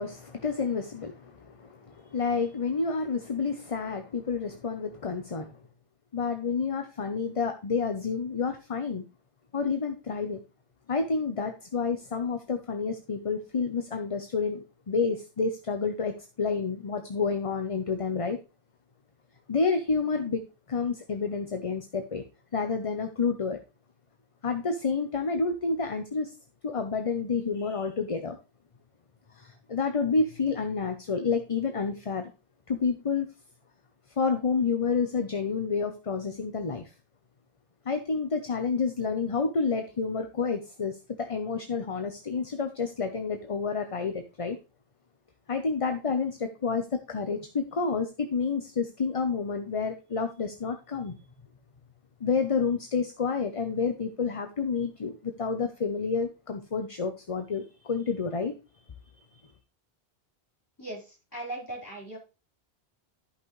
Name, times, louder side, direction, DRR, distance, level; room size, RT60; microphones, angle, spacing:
voice 1, 0.0-5.6 6.1-9.0 9.5-10.4 10.9-16.1 16.4-18.4 19.5-20.4 20.7-22.2 22.5-23.6 24.4-26.3 26.6-28.4 29.3-32.3 32.7-33.3 34.2-36.9 37.8-44.6 45.5-51.1 52.2-58.5 59.3-59.5, left 5 dB, 35° left, 7 dB, 0.8 m, -29 dB
voice 2, 60.8-62.2, right 1 dB, 20° left, -3 dB, 4.4 m, -38 dB
13.5 x 5.7 x 3.2 m, 0.30 s
omnidirectional pair, 1.1 m